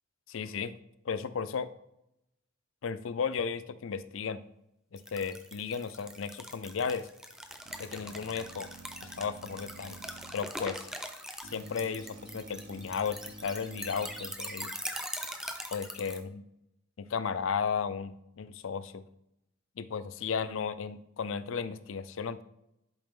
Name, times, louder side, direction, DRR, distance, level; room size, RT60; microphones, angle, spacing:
voice 1, 0.3-0.7 1.0-1.7 2.8-4.4 4.9-7.1 7.8-8.7 9.0-10.0 10.3-10.9 11.4-14.7 15.7-16.4 17.0-19.0 19.8-22.4, left 6 dB, 80° left, 14 dB, 0.5 m, -34 dB
sound 1, 5.0-16.2, equal, 5° right, 0.6 m, -42 dB
sound 2, 7.7-10.3 11.4-14.3, right 2 dB, 55° right, 0.9 m, -50 dB
10.5 x 4.8 x 3.7 m, 0.84 s
head